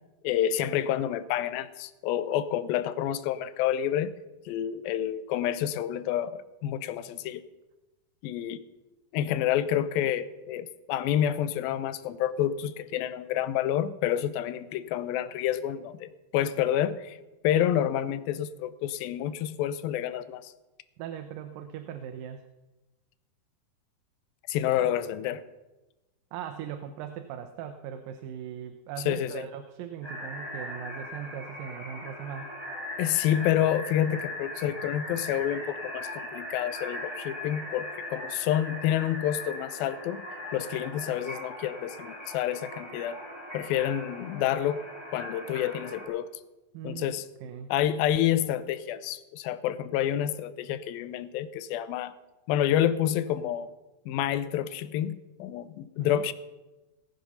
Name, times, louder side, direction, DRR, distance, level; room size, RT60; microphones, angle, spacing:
voice 1, 0.2-4.1 4.5-7.4 8.2-8.6 9.1-17.2 17.4-20.5 24.5-25.4 29.1-29.5 33.0-40.2 40.5-43.2 43.5-44.8 45.1-46.3 46.8-47.3 47.7-52.1 52.5-53.7 54.1-56.3, left 11 dB, 90° left, 14 dB, 2.5 m, -28 dB
voice 2, 21.0-22.5 26.3-32.5 46.7-47.7 56.0-56.2, right 9 dB, 80° right, 8 dB, 2.3 m, -39 dB
sound 1, 30.0-46.1, left 1 dB, 5° left, 3.5 m, -39 dB
18.5 x 7.9 x 5.7 m, 1.1 s
omnidirectional pair, 4.1 m